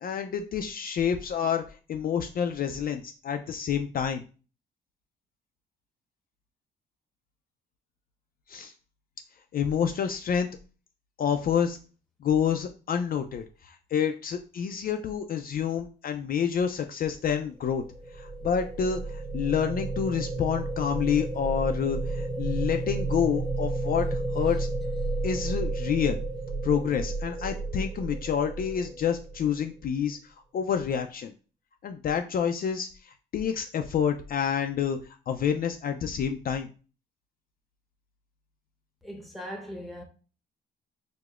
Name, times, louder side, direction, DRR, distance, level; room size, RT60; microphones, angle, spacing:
voice 1, 0.0-4.2 8.5-8.7 9.5-10.5 11.2-11.8 12.2-17.8 18.1-24.7 25.2-26.2 26.6-31.3 31.8-35.0 35.3-36.7, left 8 dB, 50° left, 0.4 m, -28 dB
sound 1, 17.5-29.7, right 3 dB, 20° right, 1.1 m, -32 dB
voice 2, 39.0-40.0, equal, ahead, 0.8 m, -39 dB
4.8 x 2.0 x 2.4 m
cardioid pair, 90°, 20 cm